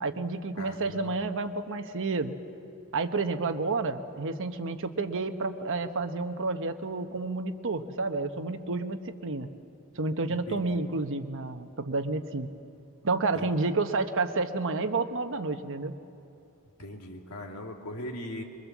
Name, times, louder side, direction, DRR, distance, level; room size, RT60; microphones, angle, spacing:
voice 1, 0.0-2.3 2.9-9.5 10.0-12.5 13.0-16.0, right 3 dB, 60° right, 8 dB, 1.1 m, -30 dB
voice 2, 0.6-1.3 10.5-10.9 13.3-13.5 16.8-18.4, left 1 dB, 90° left, 2 dB, 2.5 m, -40 dB
25.0 x 23.0 x 7.3 m, 2.6 s
head